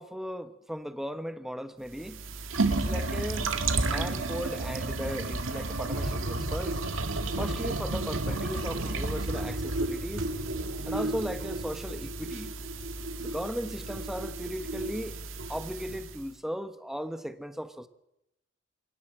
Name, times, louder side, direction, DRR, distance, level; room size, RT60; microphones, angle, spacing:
voice 1, 0.0-2.2 2.7-3.5 3.9-6.8 7.4-10.3 10.8-12.5 13.2-15.2 15.5-17.9, equal, ahead, 1.0 m, -37 dB
sound 1, 1.9-16.2, right 2 dB, 85° right, 2.0 m, -32 dB
23.0 x 18.0 x 7.5 m
head